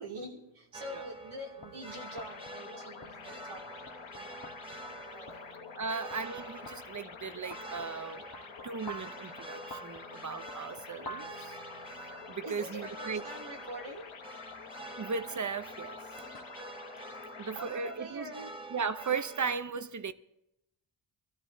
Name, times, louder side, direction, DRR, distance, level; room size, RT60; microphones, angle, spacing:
voice 1, 0.0-4.5 5.1-5.5 12.4-14.1 17.5-18.5, right 1 dB, 80° right, 3.1 m, -44 dB
sound 1, 0.7-19.6, right 2 dB, 10° right, 1.0 m, -48 dB
sound 2, 1.6-16.4, equal, 50° left, 1.4 m, -52 dB
sound 3, 1.9-17.6, left 6 dB, 75° left, 1.3 m, -48 dB
voice 2, 5.7-8.2 8.6-11.6 12.3-13.2 15.0-16.0 17.4-18.3 18.7-20.1, right 5 dB, 35° right, 0.8 m, -36 dB
25.0 x 13.5 x 2.8 m
cardioid pair, 65°, 48 cm